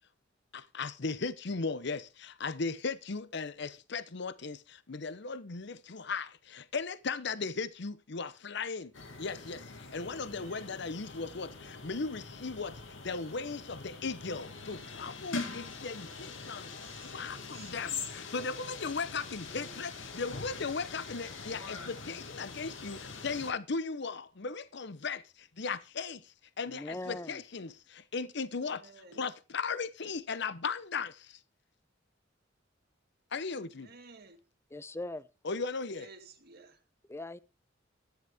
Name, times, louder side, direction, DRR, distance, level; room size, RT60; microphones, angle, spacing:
voice 1, 0.5-8.9 9.2-16.7 17.0-28.8 29.1-31.4 33.3-33.9 35.4-36.1, left 4 dB, 65° left, 0.8 m, -37 dB
sound 1, 8.9-23.5, left 4 dB, 90° left, 2.3 m, -43 dB
voice 2, 10.0-11.0 16.5-17.7 28.6-29.3 33.6-34.5 35.9-36.8, right 3 dB, 55° right, 2.1 m, -55 dB
voice 3, 26.7-27.4 34.7-35.3 37.1-37.4, left 2 dB, 15° left, 0.6 m, -40 dB
13.5 x 10.5 x 3.6 m
head